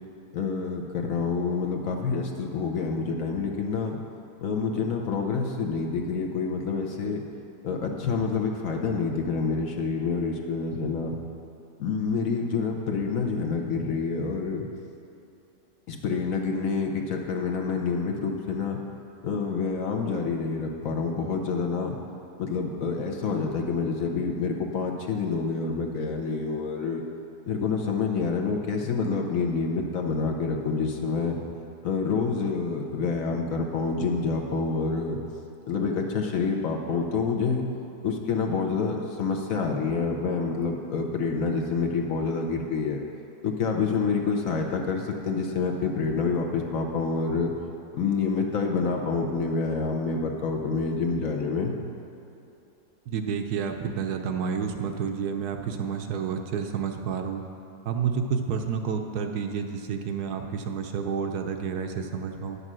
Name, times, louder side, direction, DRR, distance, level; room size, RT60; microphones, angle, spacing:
voice 1, 0.3-4.0 4.4-7.2 7.6-11.2 11.8-14.7 15.9-18.8 19.2-22.0 22.4-27.0 27.5-31.4 31.8-35.2 35.7-37.6 38.0-43.0 43.4-47.5 47.9-51.8, left 4 dB, 60° left, 1 dB, 1.0 m, -27 dB
voice 2, 53.1-57.4 57.9-62.6, right 6 dB, 70° right, 5 dB, 1.1 m, -30 dB
9.7 x 6.6 x 6.1 m, 2.9 s
omnidirectional pair, 1.8 m